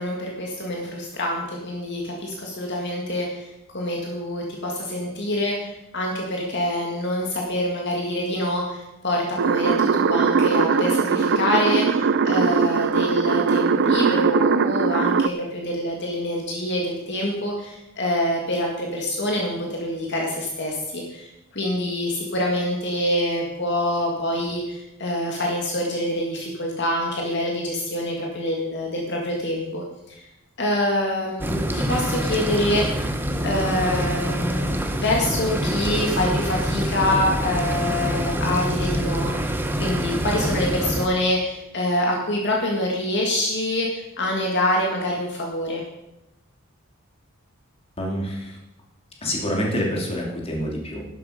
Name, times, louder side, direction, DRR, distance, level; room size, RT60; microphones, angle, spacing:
voice 1, 0.0-30.2 30.6-33.0 33.4-45.8, left 1 dB, 55° left, -1 dB, 2.1 m, -26 dB
sound 1, 9.4-15.3, right 5 dB, 55° right, 0.4 m, -20 dB
sound 2, 31.4-41.1, equal, 10° right, 1.0 m, -25 dB
voice 2, 48.0-48.6 49.2-51.1, equal, 30° left, -1 dB, 3.0 m, -27 dB
12.0 x 11.5 x 5.2 m, 0.91 s
head